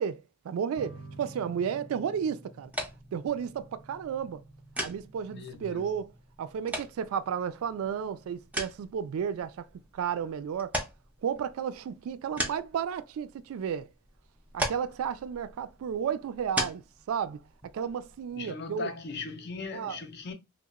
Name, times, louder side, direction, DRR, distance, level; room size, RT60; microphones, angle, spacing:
voice 1, 0.0-2.7 3.1-4.4 4.8-6.1 6.4-9.7 9.9-10.8 11.2-13.9 14.5-17.4 17.7-18.9 19.7-20.0, right 7 dB, 85° right, 0.3 m, -33 dB
sound 1, 0.7-11.8, right 2 dB, 85° left, 1.0 m, -52 dB
sound 2, 2.7-18.3, right 1 dB, 5° right, 0.4 m, -40 dB
voice 2, 5.3-5.9 18.4-20.3, left 4 dB, 50° left, 0.5 m, -39 dB
2.8 x 2.0 x 2.3 m
head